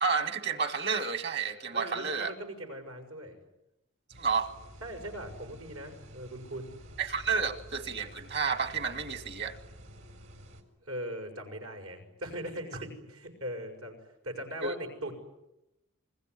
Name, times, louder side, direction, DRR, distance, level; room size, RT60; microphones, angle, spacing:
voice 1, 0.0-2.3 4.2-4.5 7.0-9.6 14.6-14.8, right 5 dB, 50° right, 10 dB, 1.9 m, -30 dB
voice 2, 1.7-3.4 4.8-6.8 10.8-14.0 14.2-15.1, equal, 85° right, 4 dB, 6.4 m, -40 dB
sound 1, 4.1-10.6, equal, 70° right, 4.2 m, -50 dB
28.0 x 21.5 x 9.8 m, 0.91 s
head